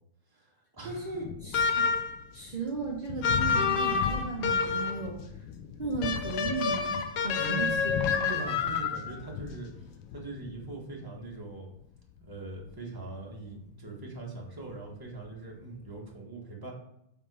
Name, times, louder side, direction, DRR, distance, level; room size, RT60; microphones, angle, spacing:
voice 1, 0.3-1.2 7.4-7.9 8.3-11.7 12.3-16.7, right 3 dB, 10° right, -2 dB, 1.4 m, -42 dB
Thunder, 0.8-16.1, left 8 dB, 85° left, 1.6 m, -41 dB
voice 2, 0.8-1.9 2.3-5.2 5.8-8.3, right 4 dB, 30° right, -4 dB, 0.8 m, -36 dB
sound 1, 1.5-2.2 3.2-5.1 6.0-9.2, left 5 dB, 65° left, 1.0 m, -28 dB
7.7 x 5.1 x 4.9 m, 0.80 s
omnidirectional pair, 2.4 m